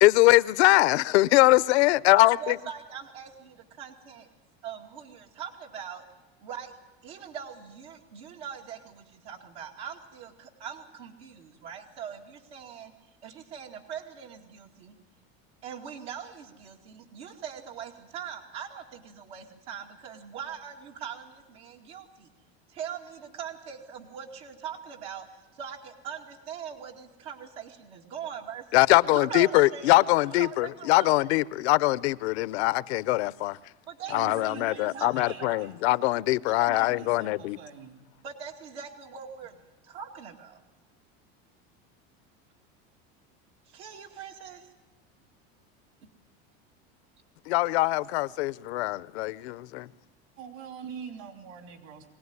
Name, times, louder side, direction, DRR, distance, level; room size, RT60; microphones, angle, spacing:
voice 1, 0.0-2.6 28.7-33.6 34.1-37.6 47.5-49.9, left 19 dB, 85° left, 0.7 m, -22 dB
voice 2, 2.1-4.3 4.6-6.1 6.4-6.7 7.0-12.9 13.2-15.0 15.6-22.3 22.7-28.9 29.1-30.0 30.3-31.3 33.9-35.1 35.4-35.7 38.2-39.6 39.8-40.6 43.7-44.7, right 8 dB, 85° right, 2.4 m, -41 dB
voice 3, 34.1-35.7 36.5-38.0 50.4-52.1, right 7 dB, 65° right, 3.1 m, -43 dB
23.5 x 17.5 x 9.6 m
supercardioid pair, 125°, 32 cm